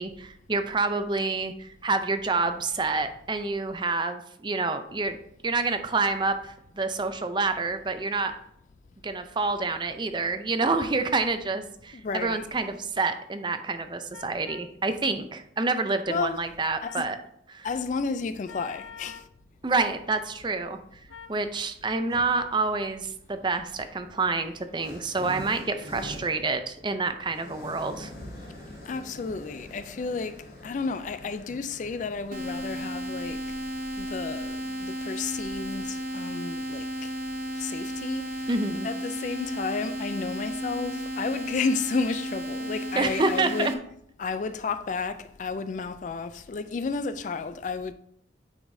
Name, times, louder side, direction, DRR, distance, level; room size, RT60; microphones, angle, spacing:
voice 1, 0.0-5.2 5.4-8.3 9.0-17.2 17.5-17.7 19.6-20.8 21.3-28.1 38.5-38.9 42.9-43.7, right 3 dB, 25° right, 0.5 m, -28 dB
sound 1, 8.2-8.4 9.6-9.8 10.6-10.9 12.2-12.5 14.1-14.7 16.8-17.1 18.5-19.3 21.1-21.4, left 7 dB, 85° left, 0.6 m, -46 dB
voice 2, 11.9-12.5 16.1-16.4 16.8-17.0 17.6-19.2 28.9-33.4 34.0-36.9 37.6-38.5 38.8-43.8 44.2-47.9, left 4 dB, 40° left, 0.3 m, -32 dB
sound 2, 22.1-22.6 23.5-37.0, equal, 60° left, 2.6 m, -46 dB
sound 3, 32.3-43.7, equal, 50° right, 0.8 m, -34 dB
9.5 x 4.9 x 2.7 m
head